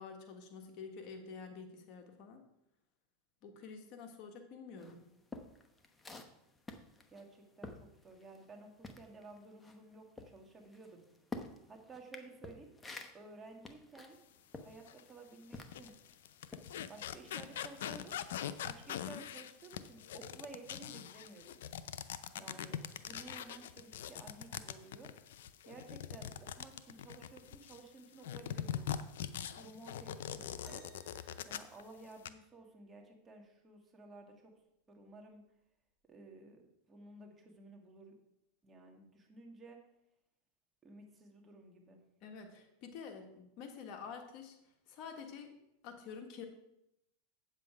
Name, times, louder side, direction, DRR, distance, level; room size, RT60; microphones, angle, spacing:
voice 1, 0.0-2.4 3.4-5.0 42.2-44.6 44.9-45.5 45.8-46.5, left 5 dB, 50° left, 5 dB, 1.5 m, -48 dB
voice 2, 4.7-5.0 7.1-7.8 8.0-11.0 11.7-12.7 13.1-14.2 14.6-15.9 16.9-18.1 18.6-21.6 22.4-25.1 25.6-29.1 29.5-30.8 31.4-34.5 34.9-35.4 36.1-36.6 36.9-38.1 38.6-39.8 40.8-42.0, right 3 dB, 20° right, 2 dB, 1.8 m, -54 dB
sound 1, 4.8-8.5 8.8-16.0 16.5-16.7, left 3 dB, 15° left, 0.9 m, -50 dB
sound 2, 14.9-15.0 15.6-27.8 28.2-31.8 32.1-32.3, left 10 dB, 80° left, 0.5 m, -42 dB
sound 3, 30.6-32.5 34.2-34.3 35.1-35.3 36.2-36.3, right 1 dB, 5° right, 2.1 m, -62 dB
8.4 x 7.6 x 4.9 m, 0.83 s
supercardioid pair, 120°, 0 cm